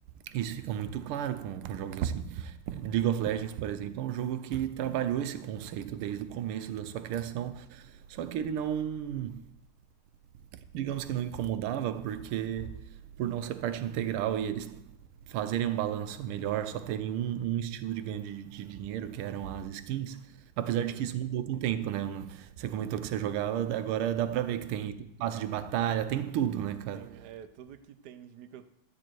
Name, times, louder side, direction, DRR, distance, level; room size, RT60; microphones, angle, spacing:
voice 1, 0.3-9.4 10.7-12.9 13.2-14.9 15.3-27.2, right 10 dB, 85° right, 1.6 m, -32 dB
voice 2, 20.6-21.1 24.3-24.6 26.9-28.7, right 10 dB, 60° right, 1.2 m, -49 dB
13.0 x 8.9 x 4.5 m
omnidirectional pair, 2.3 m